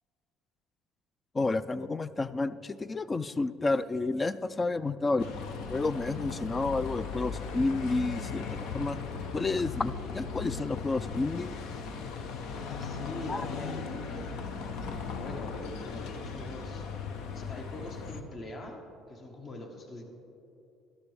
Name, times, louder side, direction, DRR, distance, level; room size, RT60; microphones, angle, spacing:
voice 1, 1.3-5.2 5.7-9.0 9.3-11.6 13.3-13.5, left 3 dB, 25° left, 15 dB, 0.4 m, -30 dB
voice 2, 5.0-5.3 12.4-16.9 17.3-18.8 19.1-20.0, left 1 dB, 45° left, 3 dB, 1.6 m, -43 dB
Bus, 5.2-18.2, left 5 dB, 70° left, 0.8 m, -38 dB
13.0 x 11.5 x 3.4 m, 2.7 s
supercardioid pair, 80°, 0 cm